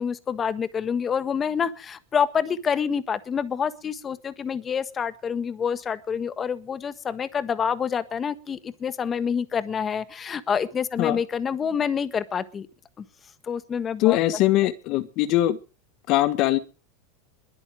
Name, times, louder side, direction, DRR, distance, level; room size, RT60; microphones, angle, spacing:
voice 1, 0.0-12.7 13.0-13.1 13.4-14.2, left 7 dB, 25° left, 1.5 m, -27 dB
voice 2, 14.0-15.6 16.1-16.6, left 15 dB, 50° left, 1.5 m, -21 dB
22.0 x 8.5 x 6.3 m
supercardioid pair, 125°, 0 cm